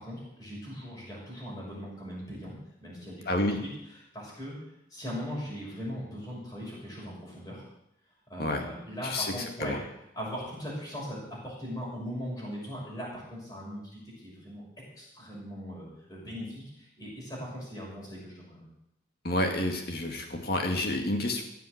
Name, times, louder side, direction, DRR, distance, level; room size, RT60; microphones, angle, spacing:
voice 1, 0.0-3.7 4.1-4.6 4.9-7.6 8.3-9.8 10.1-14.6 15.0-18.7, equal, 20° left, -6 dB, 6.3 m, -39 dB
voice 2, 3.3-3.6 8.4-8.6 9.0-9.8 19.2-21.4, left 1 dB, 50° left, 3 dB, 2.3 m, -29 dB
15.5 x 7.7 x 8.1 m, 0.81 s
head